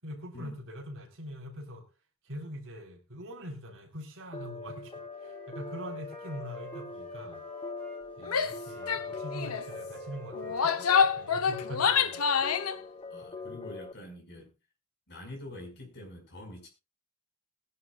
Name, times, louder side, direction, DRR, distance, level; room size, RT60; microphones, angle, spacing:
voice 1, 0.0-1.9 2.2-4.9 5.2-7.4 8.2-12.2 13.4-13.6, equal, 65° right, 3.7 m, -43 dB
sound 1, 4.3-13.9, left 4 dB, 25° left, 0.6 m, -42 dB
Wind instrument woodwind instrument, 4.7-8.0 8.6-12.1, right 2 dB, 5° left, 5.1 m, -51 dB
Female speech woman speaking / Yell, 8.3-8.6 8.9-9.0 9.3-9.6 10.3-12.8, left 6 dB, 70° left, 0.9 m, -26 dB
voice 2, 13.1-14.5 15.1-16.7, left 1 dB, 50° left, 5.5 m, -45 dB
20.5 x 10.5 x 2.4 m
head